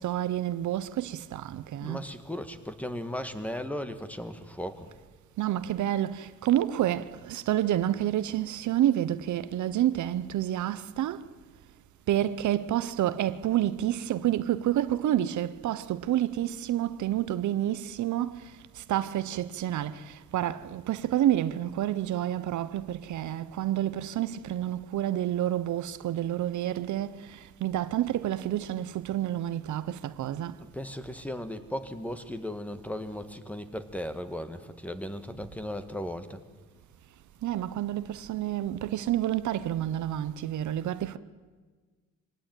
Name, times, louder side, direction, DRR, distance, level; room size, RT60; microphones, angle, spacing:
voice 1, 0.0-2.0 5.4-11.3 12.1-30.6 37.4-41.2, right 12 dB, 75° right, 0.9 m, -29 dB
voice 2, 1.8-4.9 30.7-36.4, left 1 dB, 5° left, 1.9 m, -36 dB
24.5 x 18.0 x 9.1 m
cardioid pair, 90°, 30 cm